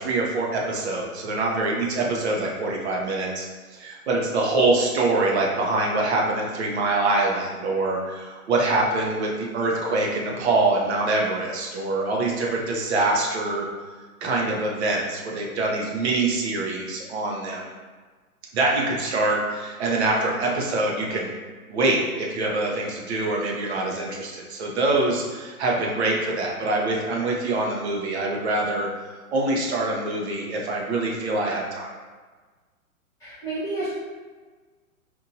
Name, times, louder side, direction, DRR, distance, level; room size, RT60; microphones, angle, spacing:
voice 1, 0.0-3.5 3.7-13.7 14.2-17.7 18.5-21.3 21.7-28.9 29.3-31.9, right 2 dB, 45° right, -1 dB, 0.9 m, -24 dB
voice 2, 33.2-33.9, right 2 dB, 10° left, -14 dB, 0.4 m, -30 dB
4.5 x 2.6 x 2.7 m, 1.4 s
figure-of-eight pair, 120°, 44 cm